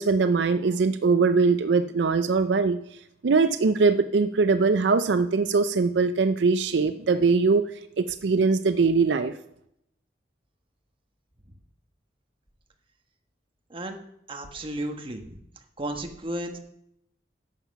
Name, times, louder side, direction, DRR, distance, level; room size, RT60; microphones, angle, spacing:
voice 1, 0.0-2.8 3.2-7.7 8.0-9.3, right 4 dB, 75° right, 11 dB, 0.5 m, -22 dB
voice 2, 14.3-15.4 15.8-16.6, right 1 dB, 30° right, 4 dB, 1.3 m, -33 dB
11.5 x 7.4 x 5.8 m, 0.77 s
head